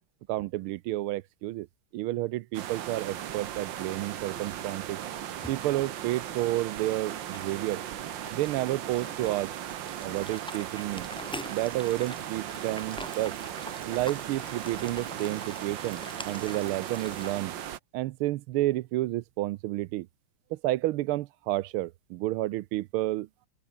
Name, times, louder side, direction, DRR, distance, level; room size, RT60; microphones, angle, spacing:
voice 1, 0.3-1.7 1.9-5.0 5.5-7.8 8.3-9.5 10.0-11.1 11.5-13.4 13.9-17.6 17.9-20.1 20.5-23.3, right 16 dB, 85° right, 1.5 m, -30 dB
sound 1, 2.5-17.8, right 11 dB, 65° right, 1.7 m, -37 dB
sound 2, 5.3-17.3, equal, ahead, 3.3 m, -45 dB
omnidirectional pair, 2.4 m